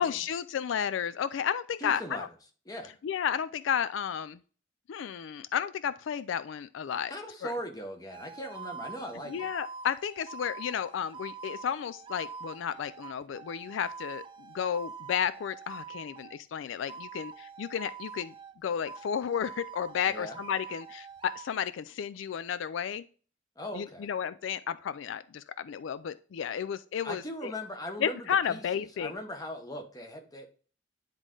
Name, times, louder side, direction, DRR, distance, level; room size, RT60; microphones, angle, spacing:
voice 1, 0.0-2.3 3.0-4.4 4.9-7.1 7.4-7.5 9.3-18.3 18.6-23.0 23.7-27.5 28.0-29.1, left 8 dB, 75° left, 15 dB, 0.3 m, -32 dB
voice 2, 1.8-2.3 2.7-2.9 7.1-9.5 20.1-20.4 23.6-24.1 27.0-30.5, equal, 20° left, 4 dB, 1.0 m, -40 dB
sound 1, 8.1-16.4 16.9-18.6 18.9-21.5, right 5 dB, 25° right, 0.3 m, -45 dB
10.0 x 3.7 x 3.7 m, 0.39 s
head